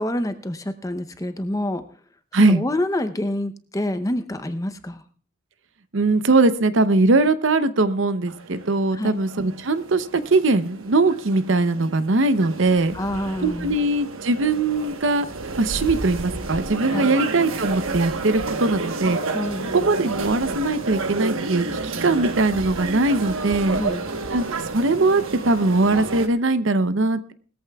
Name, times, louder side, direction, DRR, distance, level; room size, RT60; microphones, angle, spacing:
voice 1, 0.0-1.8 2.4-5.0 8.9-9.2 12.9-13.7 16.9-17.1 19.3-19.8 23.8-24.1, left 1 dB, 15° left, 9 dB, 0.7 m, -27 dB
voice 2, 5.9-12.9 13.4-15.3 15.6-19.2 19.7-23.8 24.3-27.3, right 3 dB, 65° right, 12 dB, 0.7 m, -21 dB
sound 1, 8.3-26.3, right 3 dB, 85° right, 1.2 m, -30 dB
20.0 x 14.0 x 2.3 m, 0.42 s
head